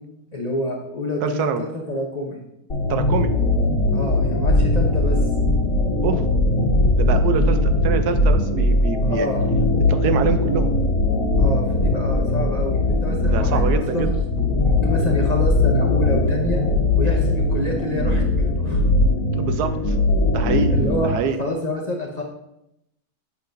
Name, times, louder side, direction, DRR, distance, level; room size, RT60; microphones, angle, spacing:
voice 1, 0.3-2.4 3.9-5.2 9.0-9.5 11.4-14.1 14.6-16.6 17.0-18.8 20.7-21.1 21.4-22.2, left 1 dB, 40° left, -1 dB, 0.6 m, -27 dB
voice 2, 1.2-1.6 2.9-3.3 6.0-6.2 7.0-9.3 9.9-10.7 13.2-14.1 19.3-20.0 20.3-21.4, right 6 dB, 90° right, 8 dB, 1.2 m, -25 dB
sound 1, 2.7-21.1, left 2 dB, 65° left, 1.7 m, -20 dB
8.1 x 6.9 x 2.6 m, 0.85 s
omnidirectional pair, 1.6 m